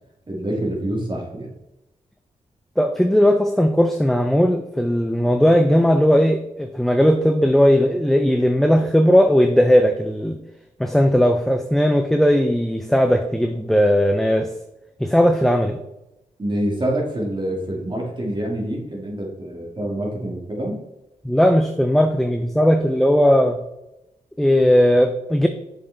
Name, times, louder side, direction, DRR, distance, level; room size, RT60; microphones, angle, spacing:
voice 1, 0.3-1.5 16.4-20.8, right 1 dB, 30° right, -1 dB, 2.5 m, -26 dB
voice 2, 2.8-10.4 10.8-14.5 15.0-15.8 21.2-23.6 24.4-25.5, equal, ahead, 7 dB, 0.6 m, -17 dB
6.9 x 5.7 x 3.6 m, 0.92 s
cardioid pair, 55°, 15 cm